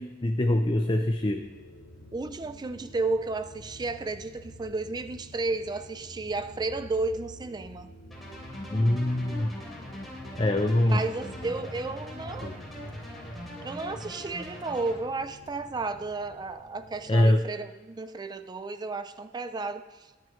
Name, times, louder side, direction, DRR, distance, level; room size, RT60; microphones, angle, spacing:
voice 1, 0.0-1.4 8.7-9.5 10.4-11.0 12.4-12.5 17.1-17.4, left 1 dB, 25° left, 5 dB, 0.6 m, -24 dB
sound 1, 1.1-17.3, equal, 70° left, 2.7 m, -47 dB
voice 2, 2.1-7.9 10.8-12.5 13.6-20.1, right 3 dB, 20° right, 10 dB, 0.4 m, -33 dB
sound 2, 8.1-15.0, left 1 dB, ahead, 3.2 m, -42 dB
22.0 x 9.3 x 3.1 m, 1.3 s
head